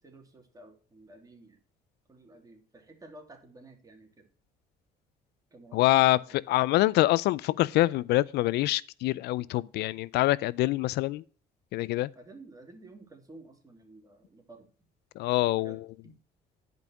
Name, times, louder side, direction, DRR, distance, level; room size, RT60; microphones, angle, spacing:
voice 1, 0.0-1.6 2.1-4.3 5.5-6.4 12.1-14.7 15.5-16.2, right 2 dB, 20° right, 2.9 m, -52 dB
voice 2, 5.7-6.2 6.5-11.2 11.7-12.1 15.2-15.8, left 17 dB, 75° left, 0.4 m, -25 dB
11.0 x 5.4 x 5.9 m
cardioid pair, 110°, 17 cm